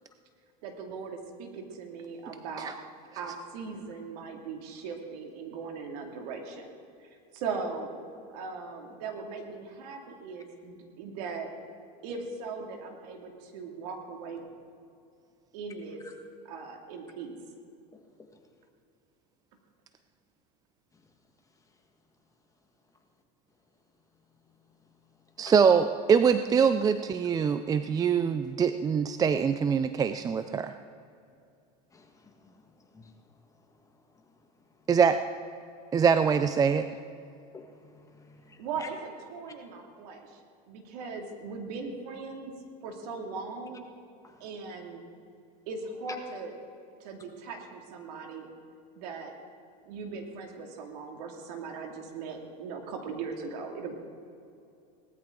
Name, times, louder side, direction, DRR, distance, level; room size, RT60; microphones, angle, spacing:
voice 1, 0.6-2.7 3.2-6.7 7.0-8.0 8.3-11.5 12.0-14.5 15.5-16.0 16.4-17.3 38.6-40.4 40.7-42.5 42.8-43.8 44.4-45.0 45.7-46.5 47.0-48.5 49.0-49.3 49.8-53.9, right 4 dB, 75° right, 3 dB, 2.4 m, -39 dB
voice 2, 25.4-30.7 34.9-35.2 35.9-36.9, right 6 dB, 20° right, 10 dB, 0.4 m, -24 dB
voice 3, 37.5-38.9 44.2-44.4, left 4 dB, 15° left, 3 dB, 1.6 m, -50 dB
18.5 x 13.5 x 3.8 m, 2.5 s
supercardioid pair, 125°, 21 cm